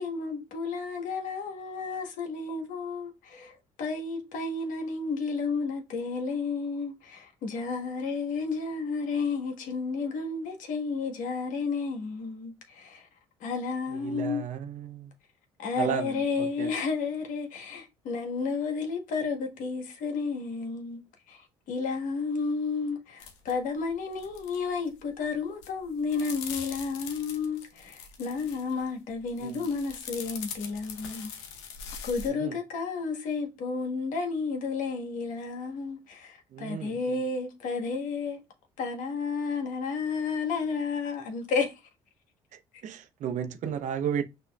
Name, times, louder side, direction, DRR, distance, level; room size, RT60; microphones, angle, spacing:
voice 1, 0.0-13.1 13.4-14.5 15.6-21.0 21.3-31.3 32.0-38.4 38.8-41.7, left 4 dB, 70° left, 1.2 m, -32 dB
voice 2, 14.0-15.1 15.8-16.2 16.6-16.7 29.4-29.6 32.4-32.5 36.5-36.9 42.8-44.2, right 8 dB, 60° right, 0.7 m, -32 dB
sound 1, 23.2-23.5 23.8-24.6 24.9-25.2 25.6-28.8 29.3-32.3, left 7 dB, 85° left, 0.8 m, -42 dB
5.9 x 2.9 x 2.2 m
hypercardioid pair, 65°, 14 cm